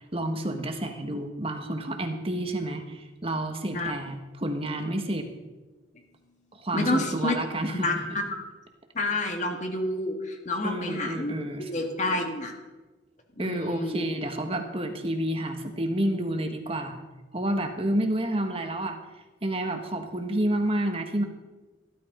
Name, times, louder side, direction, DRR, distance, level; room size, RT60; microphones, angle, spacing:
voice 1, 0.1-5.3 6.5-7.9 10.6-11.7 13.4-17.0 17.3-19.0 19.4-21.2, right 1 dB, 30° right, 5 dB, 1.6 m, -29 dB
voice 2, 6.7-7.3 7.7-8.2 8.9-11.4 11.7-12.5 13.4-14.0, left 2 dB, 40° left, 2 dB, 2.2 m, -29 dB
15.0 x 12.0 x 5.1 m, 1.2 s
head